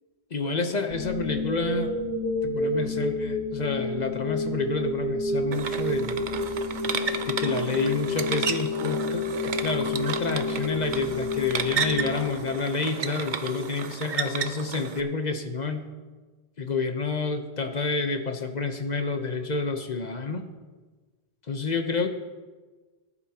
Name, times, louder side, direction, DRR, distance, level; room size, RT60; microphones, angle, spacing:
voice 1, 0.3-1.9 2.4-6.2 7.3-9.3 9.6-15.9 16.6-20.4 21.5-22.1, left 4 dB, 45° left, 6 dB, 1.0 m, -29 dB
sound 1, 0.9-12.9, left 2 dB, 70° right, 3.1 m, -30 dB
sound 2, 5.5-15.0, right 6 dB, 55° right, 0.8 m, -33 dB
18.5 x 11.0 x 2.9 m, 1.3 s
omnidirectional pair, 1.1 m